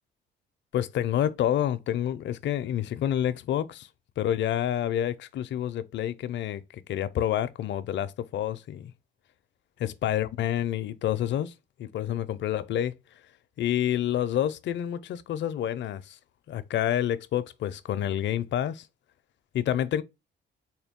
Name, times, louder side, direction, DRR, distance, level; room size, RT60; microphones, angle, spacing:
voice 1, 0.7-3.9 4.2-8.9 9.8-11.5 11.8-12.9 13.6-16.2 16.5-18.9 19.5-20.0, left 11 dB, 65° left, 0.5 m, -28 dB
4.5 x 2.3 x 3.5 m
cardioid pair, 90°, 20 cm